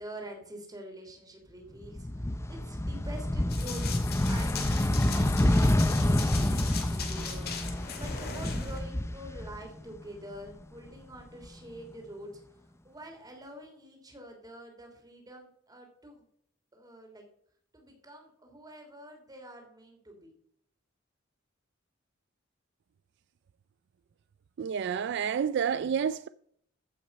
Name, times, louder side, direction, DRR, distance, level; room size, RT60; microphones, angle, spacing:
voice 1, 0.0-3.8 4.3-12.4 12.8-16.2 16.7-17.2 17.7-20.3, right 1 dB, 20° right, 3.2 m, -46 dB
sound 1, 1.8-10.0 10.3-11.5, left 1 dB, 15° left, 0.6 m, -28 dB
Run, 3.5-8.8, left 6 dB, 55° left, 2.1 m, -39 dB
voice 2, 24.6-26.3, right 7 dB, 60° right, 0.3 m, -29 dB
14.5 x 6.3 x 5.4 m
head